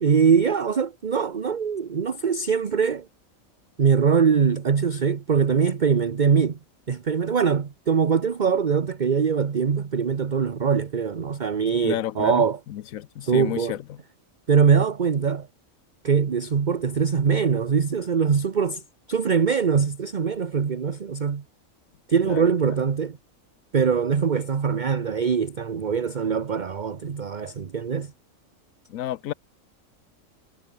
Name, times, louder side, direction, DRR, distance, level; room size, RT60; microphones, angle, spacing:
voice 1, 0.0-3.1 3.8-6.6 6.9-12.6 13.2-13.8 14.5-15.5 16.0-18.8 19.1-21.4 22.1-23.2 23.7-28.1, right 6 dB, 40° right, 1.0 m, -22 dB
voice 2, 11.8-14.0 22.3-22.5 28.9-29.3, left 12 dB, 80° left, 1.1 m, -31 dB
omnidirectional pair, 1.4 m